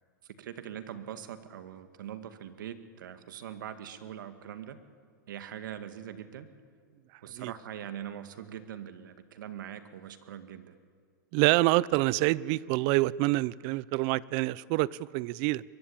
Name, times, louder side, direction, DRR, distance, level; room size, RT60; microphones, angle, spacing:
voice 1, 0.4-4.8 5.3-6.5 7.2-10.7, right 10 dB, 75° right, 1.9 m, -42 dB
voice 2, 11.3-15.6, right 19 dB, 40° right, 0.6 m, -26 dB
23.5 x 22.0 x 8.8 m
supercardioid pair, 145°, 11 cm